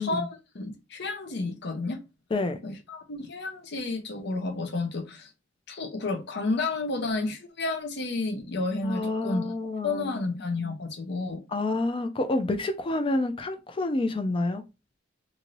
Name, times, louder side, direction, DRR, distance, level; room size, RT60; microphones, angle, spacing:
voice 1, 0.0-2.0 2.6-5.3 5.7-9.4 9.8-11.4, left 3 dB, 60° left, 0.6 m, -31 dB
voice 2, 8.8-10.3 11.5-14.6, left 2 dB, 30° left, 0.4 m, -28 dB
2.6 x 2.5 x 3.0 m
head